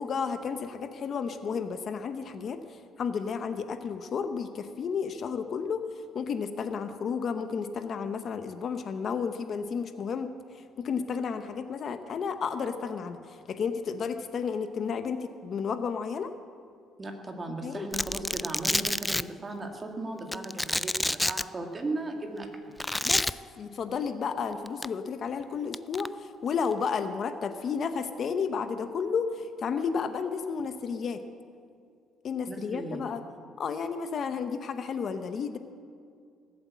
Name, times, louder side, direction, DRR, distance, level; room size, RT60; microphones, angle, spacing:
voice 1, 0.0-5.8 6.1-16.3 17.6-17.9 23.0-23.2 23.6-31.2 32.2-33.2 33.6-35.6, left 6 dB, 45° left, 9 dB, 0.8 m, -32 dB
voice 2, 17.0-22.8 32.5-33.0, right 2 dB, 25° right, 4 dB, 1.9 m, -37 dB
Domestic sounds home sounds, 17.9-19.2 20.3-21.4 22.8-23.3 24.7-24.9 25.7-26.1, left 1 dB, 5° left, 0.3 m, -28 dB
18.5 x 7.9 x 8.3 m, 2.3 s
cardioid pair, 120°, 0 cm